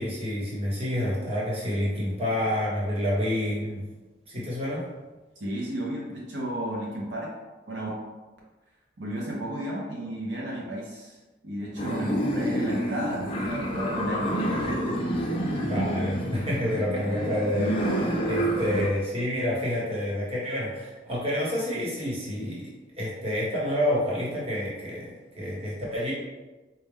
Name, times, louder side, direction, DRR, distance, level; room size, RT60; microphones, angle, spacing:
voice 1, 0.0-3.8 4.3-4.8 15.5-22.7 23.0-26.1, left 1 dB, 30° right, -6 dB, 1.1 m, -28 dB
voice 2, 5.4-7.3 7.7-7.9 9.0-11.2 11.4-14.3 15.3-15.4, right 1 dB, 75° right, -4 dB, 0.7 m, -33 dB
sound 1, 11.8-18.9, right 1 dB, 30° left, 0.5 m, -28 dB
4.2 x 2.3 x 3.6 m, 1.2 s
head